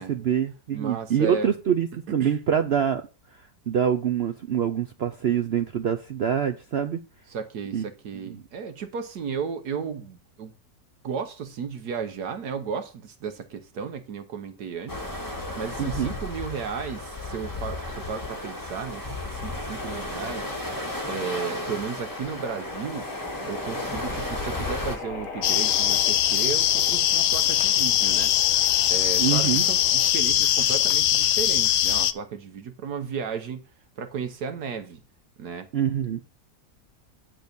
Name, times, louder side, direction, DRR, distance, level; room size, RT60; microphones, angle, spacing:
voice 1, 0.0-3.0 3.7-7.0 7.7-7.9 8.2-8.4 15.8-16.1 29.2-29.7 35.7-36.2, right 8 dB, 85° right, 0.5 m, -25 dB
voice 2, 0.7-1.5 2.2-2.4 7.3-10.5 11.0-15.0 15.6-20.4 21.0-23.1 23.4-28.3 28.9-33.6 34.0-35.0 35.4-35.7, right 6 dB, 65° right, 1.4 m, -34 dB
sound 1, 14.9-25.0, left 2 dB, 10° left, 1.8 m, -34 dB
sound 2, 18.0-30.1, left 3 dB, 50° left, 1.7 m, -41 dB
sound 3, 25.4-32.1, left 12 dB, 80° left, 1.3 m, -21 dB
10.5 x 4.0 x 6.7 m
omnidirectional pair, 1.9 m